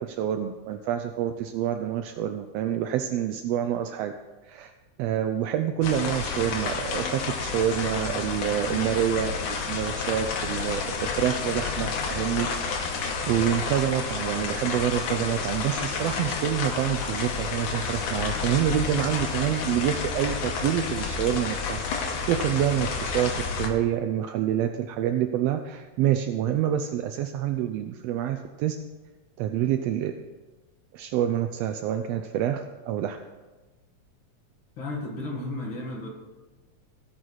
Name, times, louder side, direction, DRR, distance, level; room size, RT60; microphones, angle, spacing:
voice 1, 0.0-4.1 4.5-4.7 5.0-12.9 13.3-28.8 29.4-30.1 30.9-33.2, right 10 dB, 85° right, 7 dB, 1.4 m, -27 dB
sound 1, 5.8-23.7, left 5 dB, 85° left, 2.6 m, -30 dB
voice 2, 34.8-36.1, left 2 dB, 45° left, -1 dB, 2.4 m, -33 dB
18.0 x 6.3 x 4.0 m, 1.2 s
omnidirectional pair, 3.4 m